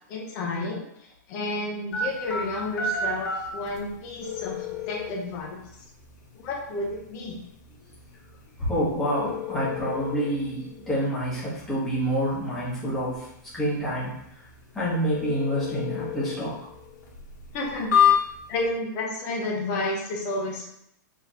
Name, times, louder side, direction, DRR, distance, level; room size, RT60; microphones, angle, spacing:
voice 1, 0.1-5.6 6.4-7.4 17.5-17.9 18.5-20.7, left 2 dB, 25° left, -2 dB, 0.9 m, -31 dB
sound 1, 1.9-18.6, left 7 dB, 75° left, 1.3 m, -31 dB
voice 2, 8.6-13.3 13.5-14.1 14.7-16.5, equal, 5° left, -10 dB, 1.3 m, -27 dB
5.1 x 3.2 x 2.9 m, 0.77 s
supercardioid pair, 170°, 10 cm